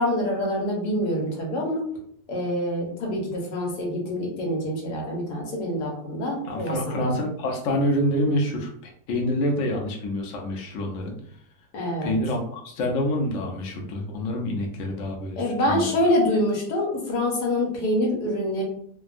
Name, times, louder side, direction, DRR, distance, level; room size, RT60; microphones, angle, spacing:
voice 1, 0.0-1.9 2.3-7.0 11.7-12.2 15.4-18.6, left 1 dB, 85° left, -1 dB, 1.4 m, -26 dB
voice 2, 6.5-8.7 9.1-11.1 12.0-15.9, left 1 dB, 65° left, 1 dB, 0.9 m, -27 dB
3.3 x 2.2 x 2.4 m, 0.65 s
omnidirectional pair, 1.7 m